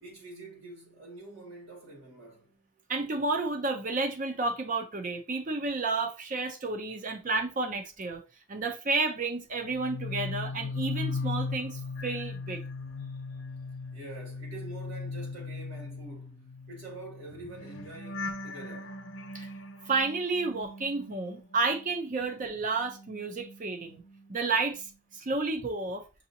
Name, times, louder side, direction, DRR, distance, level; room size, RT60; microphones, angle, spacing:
voice 1, 0.0-2.6 13.9-16.4 16.7-19.0, right 2 dB, 55° right, 2.0 m, -46 dB
voice 2, 2.9-8.2 8.5-12.6 19.3-19.5 19.9-24.0 24.3-26.0, right 3 dB, 35° right, 0.5 m, -31 dB
sound 1, 9.6-21.9 22.2-24.3 24.6-24.9, left 3 dB, 60° left, 0.9 m, -38 dB
5.9 x 2.7 x 2.7 m
head